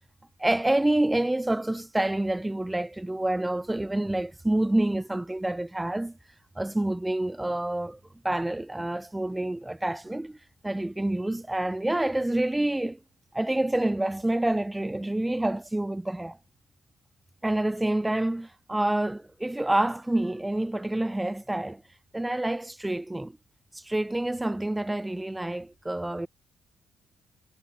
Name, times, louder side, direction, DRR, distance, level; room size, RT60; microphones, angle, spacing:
voice 1, 0.4-6.2 6.6-8.0 8.2-10.4 10.6-13.0 13.3-16.4 17.4-21.8 22.1-23.4 23.7-26.3, right 1 dB, 10° right, 5.3 m, -27 dB
cardioid pair, 90°, 0 cm